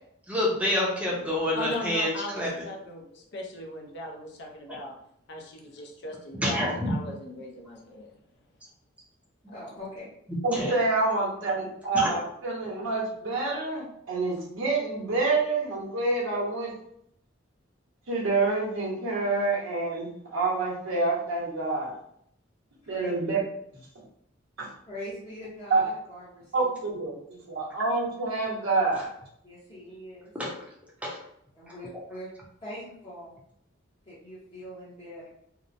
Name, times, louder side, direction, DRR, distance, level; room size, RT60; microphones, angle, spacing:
voice 1, 0.3-2.5 6.4-6.9 10.3-10.7 11.9-12.1 30.3-30.6 31.0-31.2 31.7-31.8, left 1 dB, 5° right, -4 dB, 0.6 m, -27 dB
voice 2, 1.5-5.0 5.3-8.1 9.5-9.6, left 1 dB, 60° left, 1 dB, 0.5 m, -38 dB
voice 3, 9.5-10.1 22.8-23.1 24.9-26.7 29.4-30.3 31.5-32.3 32.6-33.4 34.1-35.3, left 1 dB, 25° left, -10 dB, 0.8 m, -42 dB
voice 4, 10.4-16.7 18.1-21.9 22.9-23.5 24.6-24.7 25.7-25.8 26.5-29.1, right 3 dB, 90° right, -3 dB, 0.8 m, -27 dB
2.9 x 2.0 x 2.5 m, 0.72 s
head